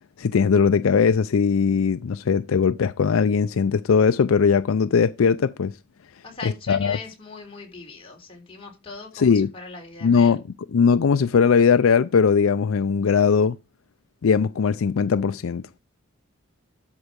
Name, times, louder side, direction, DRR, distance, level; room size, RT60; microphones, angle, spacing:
voice 1, 0.2-5.7 6.7-7.0 9.2-9.5 10.0-10.4 10.7-13.6 14.2-15.6, left 6 dB, 85° left, 0.4 m, -19 dB
voice 2, 6.2-10.4, left 4 dB, 25° left, 3.5 m, -40 dB
12.5 x 5.3 x 5.2 m
head